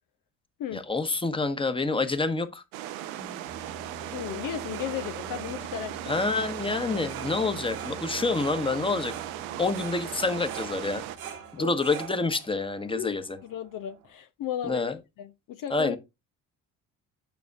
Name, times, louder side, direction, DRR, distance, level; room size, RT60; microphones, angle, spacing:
voice 1, 0.7-2.6 6.1-9.1 9.6-11.0 11.5-13.4 14.6-15.0 15.7-16.0, left 3 dB, 10° left, 1.2 m, -27 dB
sound 1, 2.7-11.2, right 13 dB, 70° right, 0.8 m, -37 dB
sound 2, 3.0-11.8, left 1 dB, 20° right, 1.0 m, -48 dB
voice 2, 4.1-6.2 11.6-11.7 12.9-16.0, left 11 dB, 50° left, 0.7 m, -35 dB
sound 3, 4.6-14.1, right 8 dB, 85° right, 1.1 m, -46 dB
9.3 x 6.2 x 2.5 m
figure-of-eight pair, 50°, 42 cm